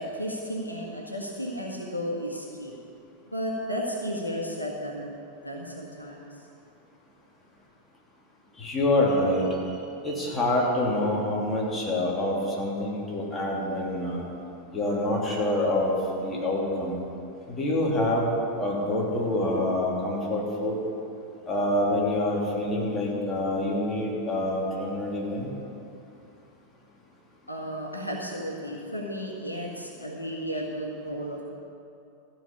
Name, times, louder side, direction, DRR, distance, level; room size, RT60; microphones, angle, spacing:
voice 1, 0.0-2.7 3.2-5.2 5.4-6.3 27.5-31.4, equal, 85° left, -2 dB, 1.6 m, -33 dB
voice 2, 8.6-9.7 10.0-14.2 14.7-15.9 16.2-17.0 17.5-18.3 18.6-20.7 21.5-25.5, left 1 dB, 15° left, -5 dB, 3.0 m, -26 dB
14.5 x 5.8 x 8.4 m, 2.7 s
figure-of-eight pair, 90°, 0 cm